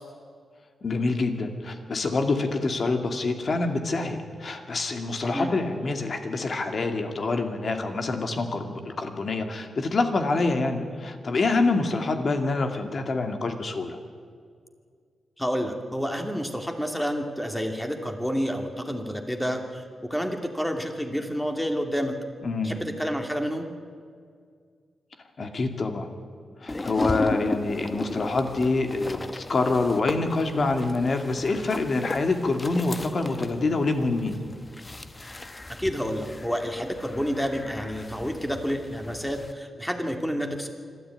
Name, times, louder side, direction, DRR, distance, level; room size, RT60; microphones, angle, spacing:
voice 1, 0.8-14.0 22.4-22.8 25.4-26.1 26.6-34.4, left 3 dB, 50° left, 6 dB, 2.3 m, -26 dB
voice 2, 5.2-5.5 15.4-19.8 20.1-22.2 22.6-23.7 35.8-40.7, equal, 5° left, 4 dB, 2.5 m, -29 dB
sound 1, 26.7-39.5, left 2 dB, 20° left, 1.0 m, -36 dB
25.5 x 13.0 x 9.2 m, 2.1 s
wide cardioid pair, 110°, 0 cm